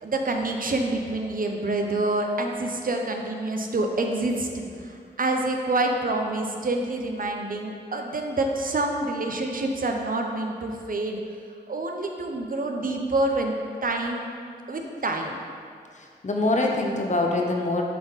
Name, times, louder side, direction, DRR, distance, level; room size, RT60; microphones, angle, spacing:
voice 1, 0.0-4.5 4.8-11.2 11.7-13.6 13.8-14.3 14.7-15.4, right 2 dB, 50° right, 2 dB, 0.7 m, -27 dB
voice 2, 16.0-17.8, left 2 dB, 40° left, 0 dB, 0.9 m, -24 dB
7.4 x 3.6 x 4.1 m, 2.2 s
cardioid pair, 50°, 18 cm